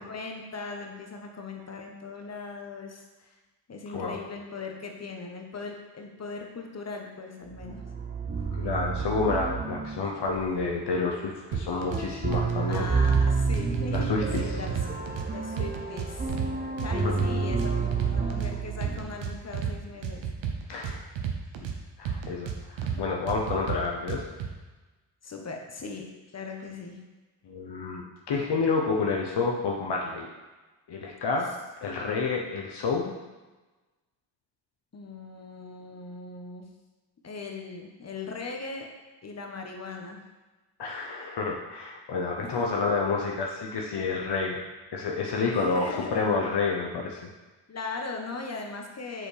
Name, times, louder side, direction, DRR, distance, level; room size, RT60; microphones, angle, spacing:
voice 1, 0.0-3.3 3.7-7.8 12.7-14.8 15.3-16.4 16.8-20.2 25.2-27.0 34.9-36.6 37.2-38.9 39.2-40.2 42.4-42.7 45.5-46.2 47.7-49.3, left 3 dB, 35° left, 2 dB, 1.1 m, -39 dB
sound 1, 7.5-19.6, right 4 dB, 20° right, 0.7 m, -30 dB
voice 2, 8.6-12.9 13.9-14.4 17.0-17.1 20.7-21.0 21.6-21.7 22.0-24.2 27.4-30.3 30.9-31.5 31.8-33.2 40.8-44.6 44.9-47.2, left 4 dB, 65° left, -1 dB, 0.9 m, -29 dB
sound 2, 11.5-12.0 12.3-13.2 13.5-15.3 15.6-16.5 16.8-18.5 18.8-19.7 20.0-21.8 22.1-23.0 23.3-24.5, right 8 dB, 90° right, 0.8 m, -32 dB
7.5 x 4.2 x 3.4 m, 1.2 s
cardioid pair, 55°, 45 cm